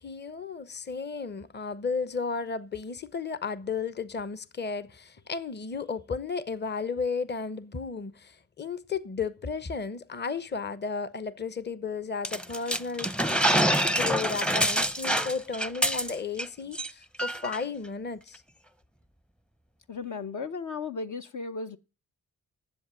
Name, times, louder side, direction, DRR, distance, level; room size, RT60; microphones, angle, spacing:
voice 1, 0.0-13.2 13.9-18.4, left 5 dB, 30° left, 0.9 m, -34 dB
sound 1, 12.2-16.5 16.7-16.9 17.2-17.6, equal, 5° left, 0.6 m, -26 dB
voice 2, 19.9-21.8, left 4 dB, 60° left, 0.9 m, -35 dB
10.0 x 7.6 x 9.1 m
cardioid pair, 55°, 34 cm